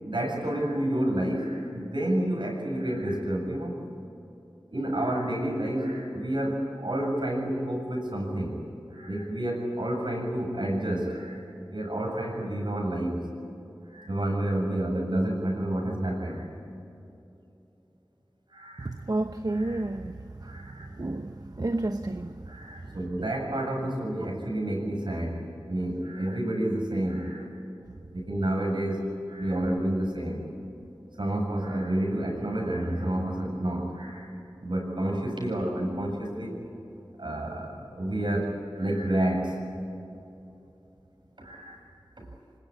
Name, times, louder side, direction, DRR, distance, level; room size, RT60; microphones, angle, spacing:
voice 1, 0.0-3.8 4.7-8.6 8.9-11.4 11.7-13.2 13.9-16.5 18.5-18.9 19.5-19.8 20.4-20.9 22.5-27.5 28.1-30.5 31.2-34.3 34.6-36.6 37.2-39.8 41.4-41.8, right 1 dB, 65° right, 1 dB, 7.6 m, -29 dB
voice 2, 18.8-22.4 22.8-23.3, right 2 dB, 50° right, 8 dB, 1.0 m, -32 dB
25.5 x 21.0 x 9.9 m, 2.7 s
wide cardioid pair, 45°, 9 cm